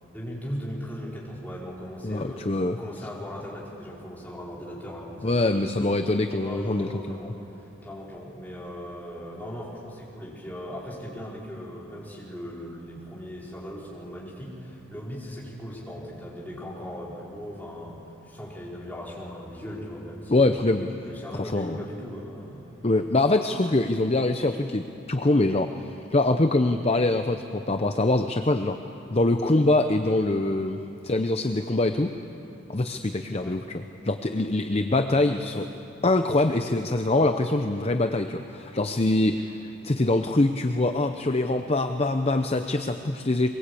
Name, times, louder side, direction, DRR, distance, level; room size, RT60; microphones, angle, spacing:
voice 1, 0.1-5.9 6.4-20.6 21.0-22.8 33.4-33.6, equal, 10° left, -6 dB, 4.7 m, -38 dB
voice 2, 2.0-2.8 5.2-7.3 20.3-20.9 21.4-21.8 22.8-28.8 29.1-32.1 32.7-35.7 36.0-43.5, left 2 dB, 30° left, 7 dB, 0.7 m, -24 dB
23.0 x 21.5 x 8.5 m, 3.0 s
head